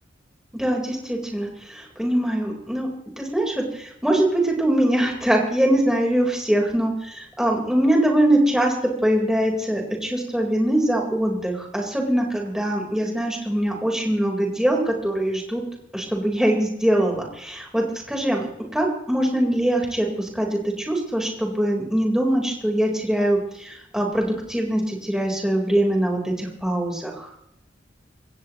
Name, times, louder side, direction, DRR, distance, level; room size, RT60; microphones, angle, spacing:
voice 1, 0.5-2.9 3.2-8.8 9.0-15.6 15.9-18.5 18.7-27.3, right 1 dB, 5° right, -1 dB, 4.1 m, -22 dB
23.5 x 18.0 x 3.1 m, 0.75 s
head